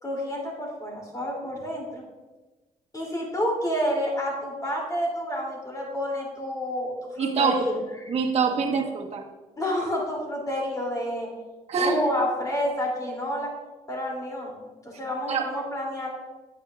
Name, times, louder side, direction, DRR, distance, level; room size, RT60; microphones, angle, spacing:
voice 1, 0.0-2.0 2.9-7.8 9.6-11.3 11.7-13.5 13.9-16.1, equal, 25° left, -1 dB, 2.8 m, -29 dB
voice 2, 7.2-9.2 11.7-12.0 15.3-15.5, right 5 dB, 50° right, 1 dB, 1.2 m, -25 dB
9.2 x 9.2 x 2.4 m, 1.2 s
cardioid pair, 90°, 14 cm